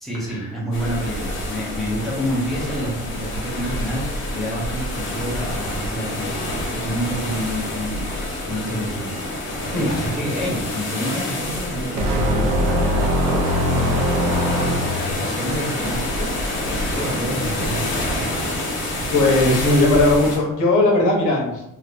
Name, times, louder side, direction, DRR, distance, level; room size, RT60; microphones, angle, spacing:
voice 1, 0.0-4.0 4.3-8.1 8.5-9.1 9.7-13.4 13.7-16.3 16.7-18.0, equal, ahead, -6 dB, 0.9 m, -28 dB
sound 1, 0.7-20.4, left 1 dB, 40° left, 0.8 m, -27 dB
sound 2, 12.0-15.2, equal, 70° right, 0.6 m, -21 dB
voice 2, 19.1-21.6, left 2 dB, 65° left, -1 dB, 1.0 m, -17 dB
3.1 x 3.1 x 2.5 m, 0.83 s
cardioid pair, 165°, 32 cm